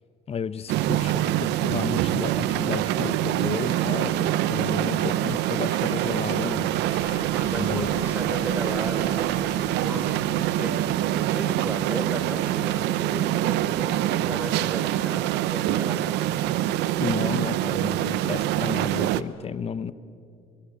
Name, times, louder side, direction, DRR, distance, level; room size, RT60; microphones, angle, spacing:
voice 1, 0.3-6.7 7.6-7.9 17.0-19.9, left 7 dB, 35° left, 15 dB, 1.0 m, -32 dB
sound 1, 0.7-19.2, right 13 dB, 90° right, 0.8 m, -25 dB
sound 2, 3.4-9.5, left 4 dB, 55° left, 6.3 m, -49 dB
sound 3, 6.4-12.0, left 7 dB, 75° left, 2.8 m, -43 dB
voice 2, 7.5-9.4 9.8-11.0 11.3-16.7, equal, 10° right, 7 dB, 3.7 m, -35 dB
25.0 x 23.5 x 8.6 m, 2.4 s
cardioid pair, 110°, 17 cm